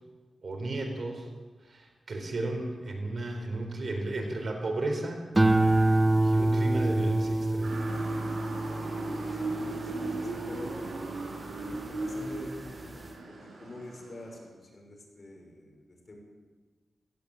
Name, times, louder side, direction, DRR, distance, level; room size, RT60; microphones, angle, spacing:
voice 1, 0.4-1.3 1.6-5.2 5.8-7.8, right 2 dB, 50° right, 4 dB, 4.1 m, -34 dB
sound 1, 5.3-11.9 12.3-12.8, right 2 dB, 20° right, 0.9 m, -27 dB
Motor vehicle (road) / Siren, 7.6-14.4, right 2 dB, 80° right, 6.9 m, -37 dB
voice 2, 9.3-10.7 11.5-13.0 13.3-16.2, left 1 dB, 35° left, 1 dB, 6.0 m, -46 dB
17.5 x 17.0 x 8.8 m, 1.4 s
wide cardioid pair, 110°, 0 cm